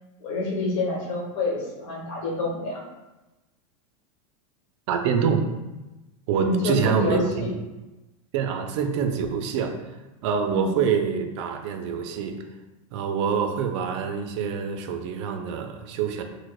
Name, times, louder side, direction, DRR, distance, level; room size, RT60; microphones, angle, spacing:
voice 1, 0.2-2.8 6.3-7.5 10.5-10.7, left 2 dB, 65° left, -2 dB, 1.0 m, -27 dB
voice 2, 4.9-5.5 6.3-7.5 8.3-9.7 10.2-12.4 12.9-16.2, right 6 dB, 60° right, 6 dB, 0.4 m, -25 dB
4.5 x 2.1 x 2.3 m, 1.1 s
supercardioid pair, 135°, 17 cm